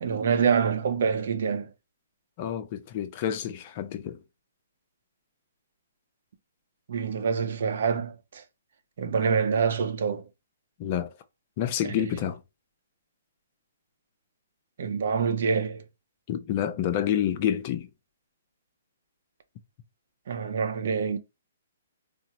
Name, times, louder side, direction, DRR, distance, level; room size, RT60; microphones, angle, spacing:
voice 1, 0.0-1.7 6.9-8.4 9.0-10.2 14.8-15.8 20.3-21.2, right 6 dB, 65° right, 0.6 m, -26 dB
voice 2, 2.4-4.2 10.8-11.1 11.6-12.4 16.3-17.9, left 10 dB, 40° left, 0.5 m, -28 dB
3.6 x 2.0 x 2.8 m
hypercardioid pair, 145°, 0 cm